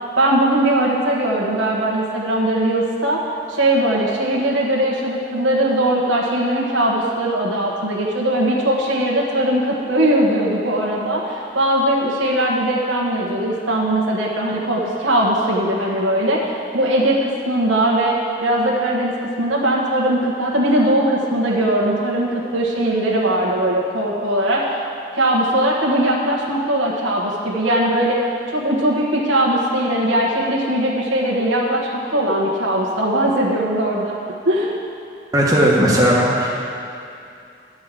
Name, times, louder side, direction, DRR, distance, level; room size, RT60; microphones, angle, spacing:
voice 1, 0.2-3.2 3.5-18.2 18.4-24.8 25.2-34.1 34.4-34.8, right 1 dB, 85° right, -4 dB, 1.4 m, -20 dB
voice 2, 35.3-36.5, equal, 20° right, -4 dB, 1.4 m, -16 dB
10.5 x 5.5 x 7.5 m, 2.6 s
head